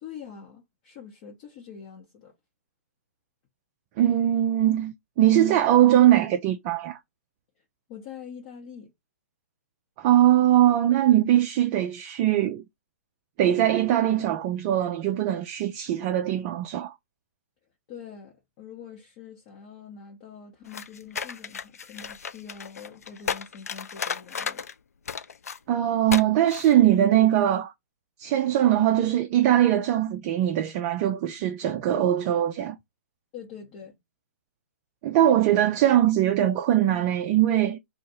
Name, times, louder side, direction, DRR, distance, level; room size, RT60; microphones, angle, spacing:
voice 1, 0.0-2.3 7.9-8.9 17.9-24.6 33.3-33.9, left 7 dB, 35° left, 1.0 m, -44 dB
voice 2, 4.0-7.0 10.0-12.6 13.4-16.9 25.7-27.7 28.2-32.8 35.0-37.8, right 12 dB, 30° right, 0.4 m, -21 dB
sound 1, 20.7-24.7 25.1-25.6 26.1-26.2 26.5-26.7, left 6 dB, 75° left, 0.4 m, -34 dB
2.6 x 2.4 x 4.1 m
hypercardioid pair, 130°, 8 cm